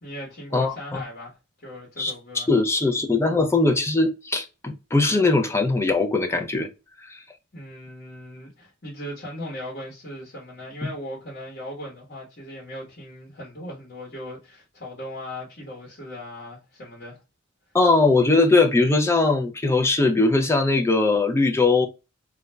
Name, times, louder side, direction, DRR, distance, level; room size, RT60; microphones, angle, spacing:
voice 1, 0.0-2.5 7.5-17.2, equal, 45° left, 1.0 m, -38 dB
voice 2, 0.5-1.0 2.0-6.7 7.1-7.2 17.7-21.9, left 3 dB, 10° left, 0.4 m, -20 dB
2.4 x 2.1 x 3.2 m
head